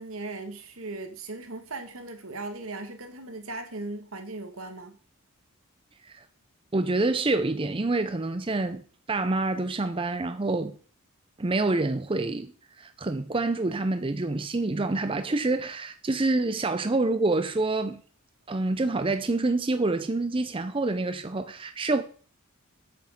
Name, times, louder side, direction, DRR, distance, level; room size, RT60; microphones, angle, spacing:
voice 1, 0.0-5.0, right 2 dB, 75° right, 1.8 m, -38 dB
voice 2, 6.7-8.8 9.1-10.8 11.4-12.5 12.8-18.0 18.5-22.0, right 2 dB, 25° right, 0.5 m, -27 dB
8.5 x 6.1 x 7.7 m
head